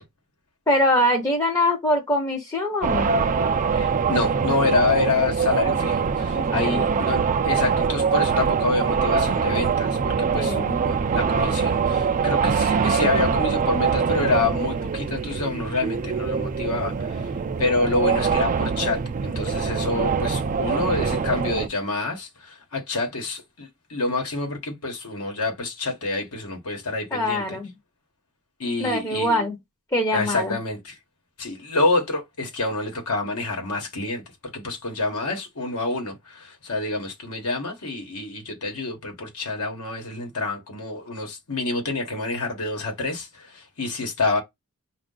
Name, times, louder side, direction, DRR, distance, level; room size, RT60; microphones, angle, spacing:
voice 1, 0.7-3.1 6.3-7.1 10.3-10.7 27.1-27.7 28.8-29.6 29.9-30.6, left 1 dB, 15° left, 0.7 m, -23 dB
sound 1, 2.8-21.7, right 5 dB, 35° right, 0.4 m, -23 dB
voice 2, 3.7-17.3 17.6-27.6 28.6-29.4 30.1-31.0 31.4-34.2 34.5-44.4, left 3 dB, 75° left, 1.2 m, -27 dB
5.3 x 2.4 x 3.8 m
head